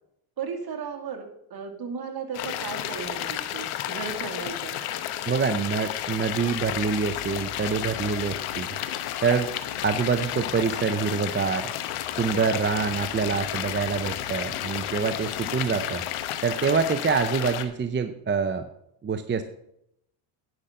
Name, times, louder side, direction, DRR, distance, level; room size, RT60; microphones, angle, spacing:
voice 1, 0.4-1.3 1.5-4.8, right 6 dB, 45° right, 3 dB, 2.3 m, -35 dB
sound 1, 2.3-17.6, left 12 dB, 90° left, 1.0 m, -32 dB
voice 2, 5.3-8.8 9.2-9.5 9.8-11.7 12.2-16.0 16.4-18.6 19.0-19.4, right 5 dB, 25° right, 8 dB, 0.6 m, -26 dB
10.5 x 5.8 x 6.4 m, 0.76 s
cardioid pair, 100°, 49 cm